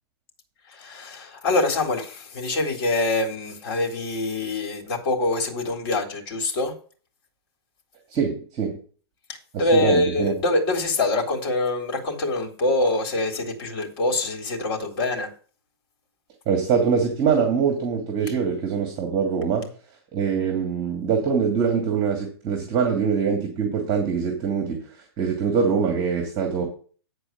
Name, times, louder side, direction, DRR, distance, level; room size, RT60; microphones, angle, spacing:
voice 1, 0.7-6.7 9.6-15.3, left 2 dB, 50° left, 3.3 m, -24 dB
voice 2, 8.1-8.8 9.5-10.3 16.5-26.6, right 6 dB, 30° right, 2.7 m, -24 dB
10.0 x 4.6 x 7.3 m
hypercardioid pair, 135°, 14 cm